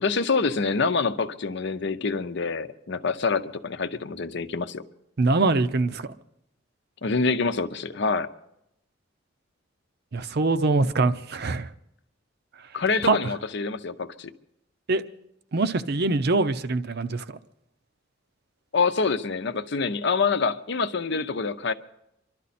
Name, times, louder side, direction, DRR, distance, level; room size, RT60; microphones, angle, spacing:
voice 1, 0.0-4.8 7.0-8.3 12.7-14.3 18.7-21.7, left 4 dB, 65° left, 0.7 m, -26 dB
voice 2, 5.2-6.0 10.1-11.7 13.1-13.2 14.9-15.0 15.5-17.2, right 3 dB, 55° right, 0.7 m, -23 dB
28.0 x 12.5 x 4.2 m
head